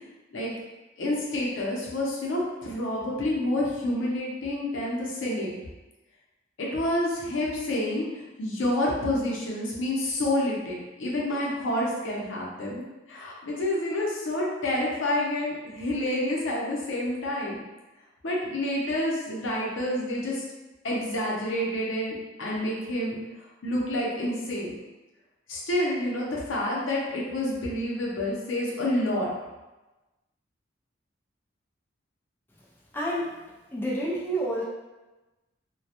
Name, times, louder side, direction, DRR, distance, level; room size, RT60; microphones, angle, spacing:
voice 1, 1.0-5.5 6.6-8.1 8.4-12.8 13.1-17.6 18.2-20.4 20.8-23.2 23.6-24.7 25.5-29.3, left 1 dB, 85° left, -3 dB, 0.6 m, -28 dB
voice 2, 32.9-33.3 33.7-34.6, right 1 dB, 10° left, -5 dB, 0.3 m, -28 dB
2.2 x 2.1 x 2.8 m, 1.1 s
head